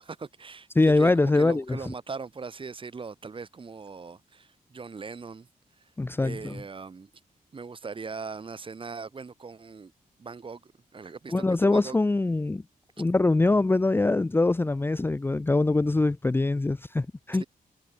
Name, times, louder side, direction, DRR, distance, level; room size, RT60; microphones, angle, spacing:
voice 1, 0.0-5.5 6.2-7.1 7.5-9.9 10.2-12.0 17.4-17.5, right 4 dB, 35° right, 6.1 m, -40 dB
voice 2, 0.7-1.8 6.0-6.6 11.3-12.6 13.0-17.4, left 2 dB, 15° left, 0.8 m, -23 dB
wide cardioid pair, 150°, 15 cm